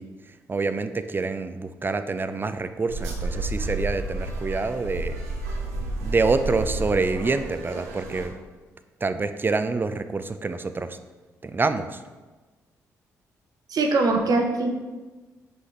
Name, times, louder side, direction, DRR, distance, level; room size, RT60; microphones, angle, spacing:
voice 1, 0.0-5.2 6.0-8.3 9.0-11.0 11.4-12.0, right 3 dB, 25° right, 10 dB, 0.5 m, -27 dB
sound 1, 2.9-8.3, right 2 dB, 85° right, 0.7 m, -31 dB
voice 2, 13.7-14.7, right 3 dB, 55° right, 3 dB, 0.9 m, -22 dB
6.3 x 5.5 x 3.3 m, 1.3 s
hypercardioid pair, 40°, 8 cm